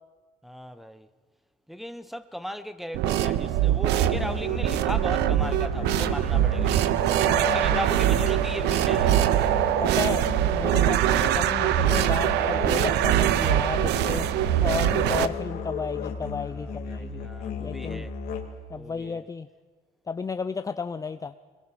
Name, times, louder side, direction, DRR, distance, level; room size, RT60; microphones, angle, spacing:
voice 1, 0.4-1.1 1.7-6.9 7.5-9.2 16.5-18.1 18.7-19.2, equal, ahead, 1.0 m, -37 dB
sound 1, 2.9-15.3, right 12 dB, 85° right, 0.8 m, -23 dB
Musical instrument, 3.9-18.7, left 4 dB, 70° left, 2.7 m, -35 dB
voice 2, 7.2-7.8 9.8-14.3 14.6-17.2 17.6-18.1 18.7-19.5 20.1-21.4, left 5 dB, 20° left, 0.6 m, -33 dB
26.0 x 21.5 x 6.1 m
cardioid pair, 110°, 17 cm